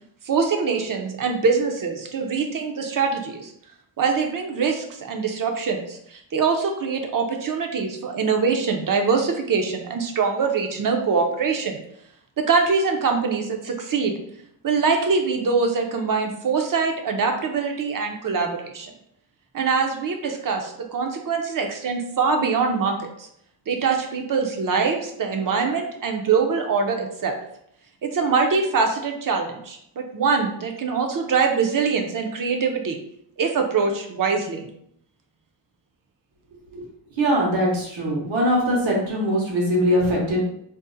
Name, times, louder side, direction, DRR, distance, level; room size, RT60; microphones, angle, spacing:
voice 1, 0.2-3.5 4.0-11.8 12.4-14.2 14.6-18.9 19.5-23.3 23.7-27.4 28.0-33.0 33.4-34.7, right 5 dB, 45° right, 4 dB, 0.5 m, -23 dB
voice 2, 37.2-40.4, equal, 85° right, -3 dB, 1.0 m, -21 dB
2.6 x 2.0 x 3.8 m, 0.71 s
cardioid pair, 95°, 45 cm